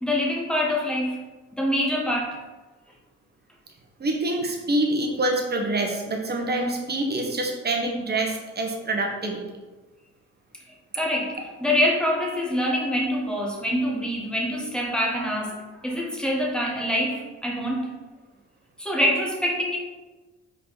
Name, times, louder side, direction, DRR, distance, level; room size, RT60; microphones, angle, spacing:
voice 1, 0.0-1.2 1.5-2.4 10.9-17.9 18.8-19.8, equal, 5° left, -2 dB, 1.5 m, -25 dB
voice 2, 4.0-9.4, right 2 dB, 35° right, 1 dB, 1.4 m, -26 dB
5.2 x 4.6 x 4.2 m, 1.2 s
cardioid pair, 90°, 30 cm